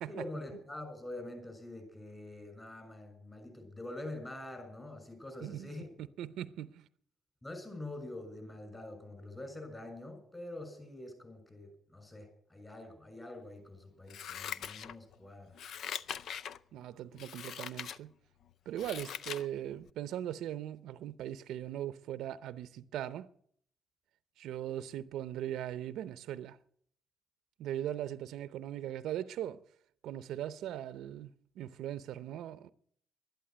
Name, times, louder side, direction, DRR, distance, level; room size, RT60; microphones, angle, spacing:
voice 1, 0.1-6.0 7.4-15.6, left 1 dB, 20° left, 6.6 m, -45 dB
voice 2, 5.4-5.7 6.0-6.8 16.7-18.1 18.7-23.3 24.4-26.6 27.6-29.6 30.0-32.7, right 11 dB, 85° right, 0.6 m, -39 dB
Scissors, 14.1-15.2 15.5-16.6 17.2-18.0 18.4-19.5 19.9-20.0, left 8 dB, 70° left, 0.6 m, -42 dB
12.0 x 11.5 x 9.2 m
cardioid pair, 90°, 0 cm